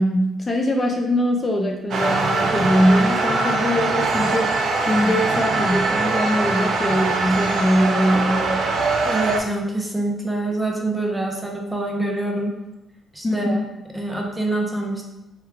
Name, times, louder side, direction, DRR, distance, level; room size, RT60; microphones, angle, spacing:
voice 1, 0.0-8.6 13.2-13.6, equal, 30° left, 1 dB, 0.4 m, -21 dB
sound 1, 1.9-9.4, right 3 dB, 65° right, 0.5 m, -22 dB
voice 2, 9.0-12.6 13.1-13.6 13.9-15.0, right 2 dB, 10° right, 0 dB, 0.6 m, -25 dB
3.2 x 2.2 x 3.4 m, 0.93 s
cardioid pair, 90°, 0 cm